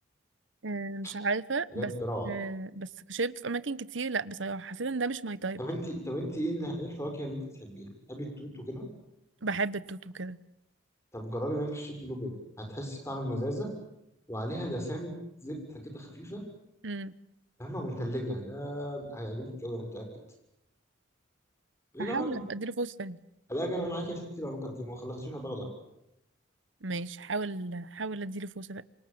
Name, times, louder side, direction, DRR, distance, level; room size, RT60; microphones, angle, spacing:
voice 1, 0.6-1.9 2.2-5.6 9.4-10.4 16.8-17.1 22.0-23.2 26.8-28.8, right 3 dB, 75° right, 17 dB, 1.1 m, -34 dB
voice 2, 1.7-2.3 5.6-8.9 11.1-13.7 14.3-15.1 15.4-16.4 17.6-20.1 21.9-22.4 23.5-25.7, equal, 15° left, 4 dB, 6.8 m, -35 dB
27.5 x 25.0 x 8.8 m, 0.82 s
head